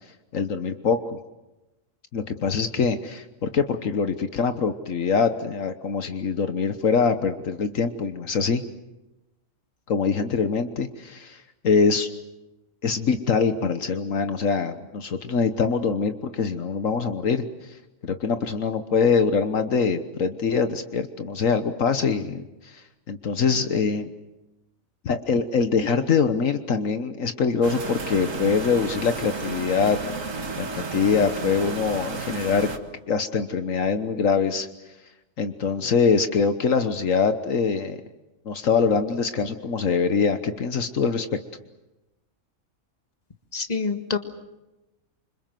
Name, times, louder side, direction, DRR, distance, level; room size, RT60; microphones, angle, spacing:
voice 1, 0.3-1.2 2.1-8.6 9.9-12.1 12.8-17.8 18.0-24.1 25.0-30.0 30.6-32.7 33.1-34.7 35.4-38.0 38.4-41.3, left 5 dB, 70° left, 9 dB, 1.5 m, -24 dB
sound 1, 27.6-32.8, right 4 dB, 70° right, 2.3 m, -32 dB
voice 2, 43.5-44.2, left 4 dB, 30° left, 7 dB, 2.0 m, -26 dB
27.5 x 25.5 x 7.7 m, 1.0 s
omnidirectional pair, 1.4 m